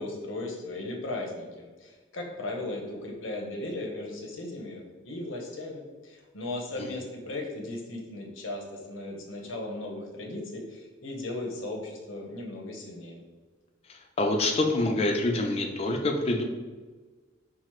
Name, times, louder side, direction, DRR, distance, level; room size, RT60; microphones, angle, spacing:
voice 1, 0.0-13.2, left 2 dB, 90° left, 0 dB, 0.8 m, -37 dB
voice 2, 13.9-16.4, left 2 dB, 30° left, 3 dB, 0.4 m, -26 dB
5.6 x 2.0 x 3.1 m, 1.4 s
head